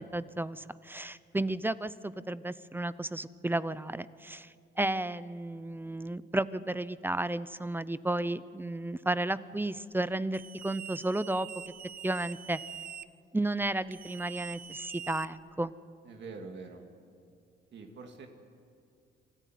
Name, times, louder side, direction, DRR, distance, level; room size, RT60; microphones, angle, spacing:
voice 1, 0.0-11.5 12.0-12.6 13.3-15.7, right 2 dB, 10° right, 16 dB, 0.6 m, -33 dB
sound 1, 10.3-13.1 13.9-15.7, right 8 dB, 45° right, 0.7 m, -44 dB
voice 2, 16.1-16.8 17.7-18.3, right 4 dB, 65° right, 3 dB, 2.5 m, -44 dB
26.0 x 14.0 x 9.3 m, 2.3 s
cardioid pair, 90°, 20 cm